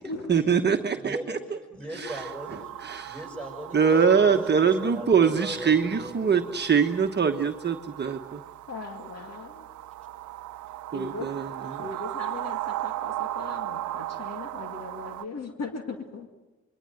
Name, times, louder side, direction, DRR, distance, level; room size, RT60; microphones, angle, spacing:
voice 1, 0.3-1.4 1.9-2.2 2.8-3.2 3.7-8.4 10.9-11.5, right 6 dB, 35° right, 4 dB, 1.3 m, -23 dB
voice 2, 0.9-2.6 3.0-6.5 11.7-11.8, right 1 dB, 5° left, 1 dB, 8.0 m, -39 dB
sound 1, 2.0-15.2, right 14 dB, 75° right, 0.8 m, -37 dB
voice 3, 8.7-9.7 10.9-11.3 11.8-16.3, left 3 dB, 55° left, 5 dB, 2.3 m, -38 dB
26.0 x 22.5 x 7.9 m, 1.2 s
cardioid pair, 90°, 30 cm